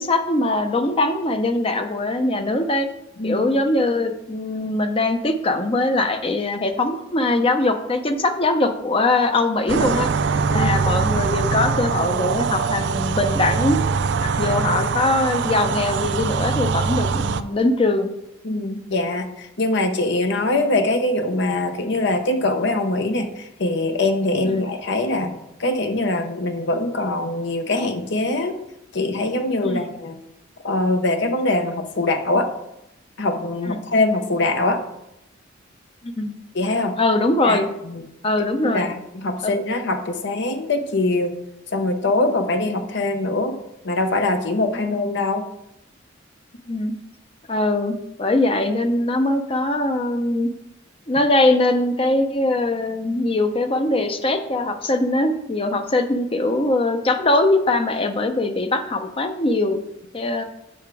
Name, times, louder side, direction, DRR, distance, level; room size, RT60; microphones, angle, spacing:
voice 1, 0.0-2.9 3.2-10.1 10.5-13.8 14.2-18.1 29.6-29.8 33.7-33.8 36.0-36.3 37.0-37.6 38.2-38.9 39.4-39.5 44.7-44.9 46.7-46.9 47.5-50.5 51.1-59.8 60.1-60.4, left 2 dB, 30° left, 7 dB, 0.7 m, -21 dB
sound 1, 9.7-17.4, right 5 dB, 65° right, 0.4 m, -22 dB
voice 2, 18.4-25.3 25.6-28.6 28.9-30.2 30.6-32.5 33.2-34.8 36.5-36.9 37.4-38.0 38.6-41.4 41.7-43.6 43.8-45.5, left 2 dB, 65° left, 7 dB, 0.9 m, -23 dB
7.1 x 5.8 x 4.7 m, 0.84 s
head